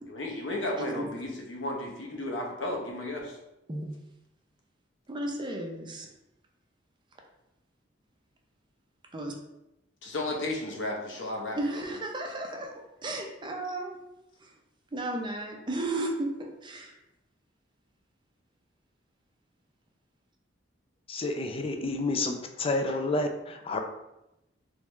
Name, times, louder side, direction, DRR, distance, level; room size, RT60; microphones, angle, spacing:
voice 1, 0.1-3.4 10.0-11.8, left 1 dB, 80° left, 0 dB, 0.9 m, -34 dB
voice 2, 5.1-6.1 9.1-9.3 11.5-12.7 13.0-14.0 14.4-14.5 14.9-16.9, right 1 dB, 25° right, 2 dB, 0.6 m, -34 dB
voice 3, 21.1-23.8, left 2 dB, 30° left, 5 dB, 0.4 m, -30 dB
3.5 x 3.2 x 3.2 m, 0.90 s
head